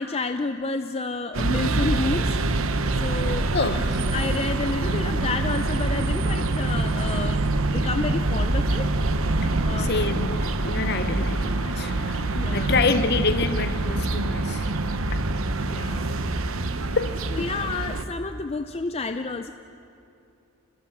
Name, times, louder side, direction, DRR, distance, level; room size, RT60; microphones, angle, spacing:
voice 1, 0.0-2.4 3.0-3.5 4.1-7.5 7.7-8.9 9.6-10.0 12.3-12.8 15.7-16.3 17.4-19.5, left 3 dB, 25° left, 0.5 m, -30 dB
sound 1, 1.3-18.1, right 2 dB, 70° right, 1.0 m, -25 dB
voice 2, 3.2-4.1 9.4-14.8 15.1-15.2 16.9-17.2, left 3 dB, 45° left, 0.8 m, -27 dB
30.0 x 21.5 x 6.0 m
head